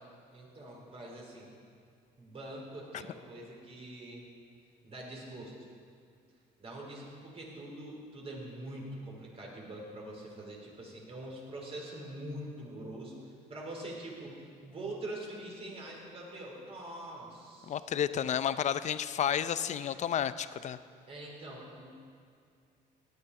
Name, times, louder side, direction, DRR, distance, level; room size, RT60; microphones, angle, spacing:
voice 1, 0.3-1.5 2.2-4.2 4.8-5.5 6.6-14.3 14.6-17.8 21.1-21.9, right 1 dB, 35° right, -2 dB, 4.0 m, -44 dB
voice 2, 17.7-20.8, left 9 dB, 45° left, 14 dB, 0.5 m, -31 dB
17.0 x 11.0 x 4.9 m, 2.2 s
cardioid pair, 110°, 17 cm